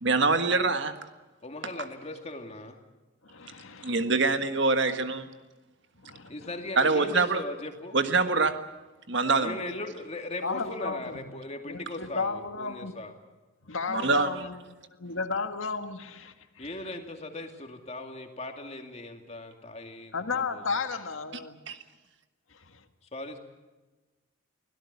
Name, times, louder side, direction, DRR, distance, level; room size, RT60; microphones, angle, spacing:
voice 1, 0.0-0.9 3.8-5.2 6.8-7.4 7.9-8.6 9.1-9.5 13.9-14.4 21.7-21.8, right 3 dB, 60° right, 8 dB, 1.6 m, -24 dB
voice 2, 1.4-2.8 6.3-8.0 9.4-13.1 16.6-20.6 23.1-23.4, left 2 dB, 30° left, 4 dB, 2.5 m, -39 dB
voice 3, 3.2-4.0 6.0-6.5 10.4-11.2 11.6-13.0 13.7-14.5 15.0-16.8 20.1-21.6, left 4 dB, 75° left, 7 dB, 1.7 m, -34 dB
24.0 x 17.5 x 8.3 m, 1.2 s
head